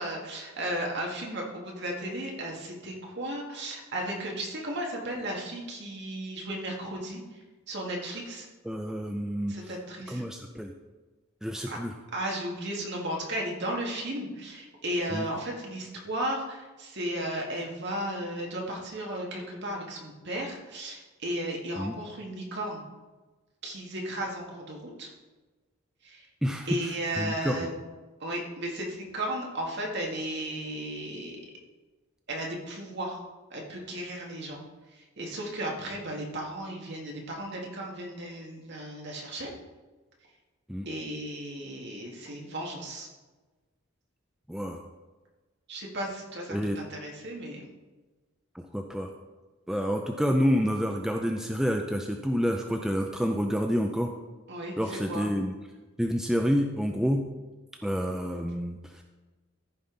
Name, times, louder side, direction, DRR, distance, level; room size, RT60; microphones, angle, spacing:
voice 1, 0.0-8.5 9.5-10.2 11.7-11.8 12.1-22.8 23.6-25.1 26.0-26.3 26.7-27.7 28.2-31.4 32.3-33.2 33.5-34.6 34.9-39.5 40.9-43.1 45.7-47.7 54.5-55.3, right 1 dB, 55° right, -1 dB, 1.9 m, -35 dB
voice 2, 8.7-9.5 10.1-10.7 11.4-11.9 15.1-15.3 21.8-21.9 26.4-26.7 27.2-27.7 40.7-40.9 44.5-44.8 46.5-46.8 48.5-49.1 49.7-54.1 54.8-55.5 56.0-57.2 57.8-59.0, equal, ahead, 3 dB, 0.4 m, -28 dB
14.0 x 5.4 x 3.9 m, 1.2 s
head